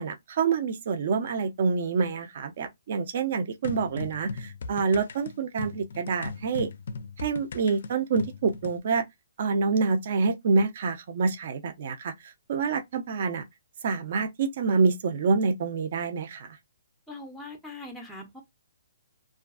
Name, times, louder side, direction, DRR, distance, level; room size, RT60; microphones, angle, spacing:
voice 1, 0.0-6.7 7.2-9.0 9.4-13.4 13.8-16.5, right 4 dB, 45° right, 0.5 m, -27 dB
sound 1, 3.6-8.8, left 4 dB, 65° left, 0.4 m, -38 dB
voice 2, 17.1-18.4, left 2 dB, ahead, 0.5 m, -41 dB
2.4 x 2.3 x 2.3 m
hypercardioid pair, 165°, 0 cm